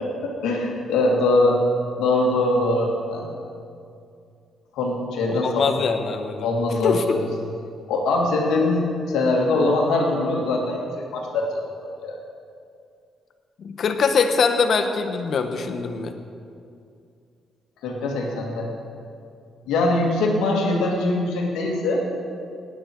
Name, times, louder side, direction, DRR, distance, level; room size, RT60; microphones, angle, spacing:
voice 1, 0.0-1.6 2.0-3.3 4.8-5.6 6.4-7.2 7.9-8.8 9.1-11.5 11.8-12.2 17.8-18.7 19.7-22.0, left 2 dB, 90° left, -1 dB, 2.2 m, -22 dB
voice 2, 5.4-6.5 6.8-7.2 13.6-16.1, left 5 dB, 55° left, 7 dB, 1.2 m, -23 dB
18.5 x 9.3 x 4.6 m, 2.4 s
cardioid pair, 90°, 0 cm